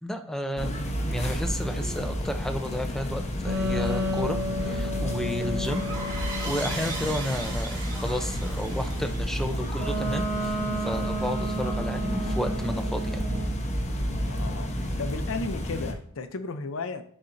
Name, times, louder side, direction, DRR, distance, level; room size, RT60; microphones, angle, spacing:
voice 1, 0.0-5.8 6.5-10.6 10.8-13.3, equal, ahead, 5 dB, 0.6 m, -32 dB
sound 1, 0.6-15.9, equal, 35° left, 1.0 m, -31 dB
sound 2, 3.5-7.5 9.8-13.5, equal, 70° right, 1.2 m, -32 dB
sound 3, 5.7-11.0, right 2 dB, 20° right, 2.6 m, -39 dB
voice 2, 14.0-14.7 15.0-17.0, left 3 dB, 70° left, 10 dB, 0.6 m, -34 dB
11.0 x 4.2 x 2.6 m, 0.62 s
head